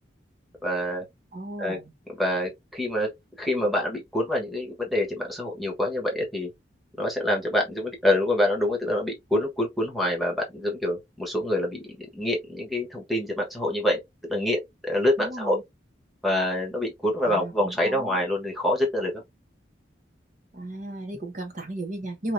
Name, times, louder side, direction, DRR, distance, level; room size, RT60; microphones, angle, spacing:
voice 1, 0.6-1.1 1.6-1.8 2.2-3.1 3.4-6.5 7.0-14.0 14.3-15.6 16.2-19.2, left 1 dB, ahead, 1.2 m, -26 dB
voice 2, 1.3-1.9 15.2-15.6 17.2-18.2 20.5-22.3, right 1 dB, 40° right, 1.1 m, -35 dB
4.7 x 2.7 x 2.6 m
head